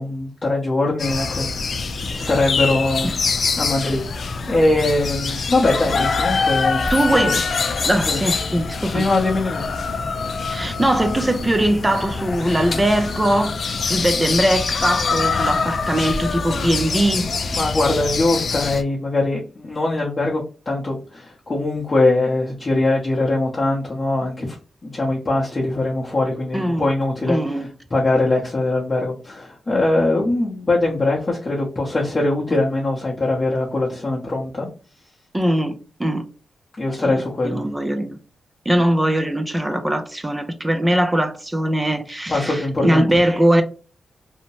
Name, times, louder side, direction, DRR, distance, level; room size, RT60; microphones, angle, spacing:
voice 1, 0.0-3.1 3.6-7.3 8.1-8.2 8.9-9.7 17.5-24.5 24.8-34.7 36.8-37.6 42.3-43.1, left 2 dB, 35° left, 0.7 m, -22 dB
sound 1, 1.0-18.8, left 4 dB, 60° left, 0.4 m, -24 dB
voice 2, 6.9-7.4 7.9-9.1 10.5-17.3 26.5-26.9 27.3-27.7 35.3-36.2 37.0-38.2 38.7-43.6, right 1 dB, 15° right, 0.4 m, -21 dB
2.7 x 2.0 x 2.9 m
cardioid pair, 75°, 0 cm